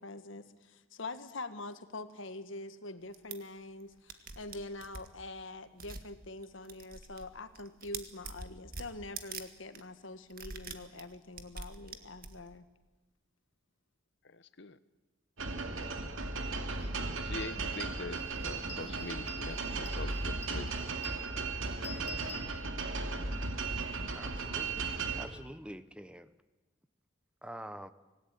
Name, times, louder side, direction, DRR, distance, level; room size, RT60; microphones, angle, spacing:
voice 1, 0.0-12.7, left 2 dB, 75° left, 11 dB, 1.6 m, -44 dB
sound 1, 3.1-3.4 3.8-3.9 4.1-5.1 5.8-6.1 6.4-7.3 7.5-9.4 9.7-9.8 10.3-12.5, right 5 dB, 50° right, 2.0 m, -44 dB
voice 2, 14.2-14.8 15.8-16.3 17.2-20.8, left 3 dB, 60° left, 14 dB, 1.1 m, -44 dB
sound 2, 15.4-25.3, right 3 dB, 85° right, 2.3 m, -36 dB
sound 3, 16.8-16.9 17.3-23.1, left 4 dB, 30° left, 2.9 m, -51 dB
voice 3, 24.1-24.9 25.1-26.3 27.4-27.9, right 1 dB, 5° right, 13 dB, 0.8 m, -46 dB
26.0 x 18.5 x 9.2 m, 1.1 s
head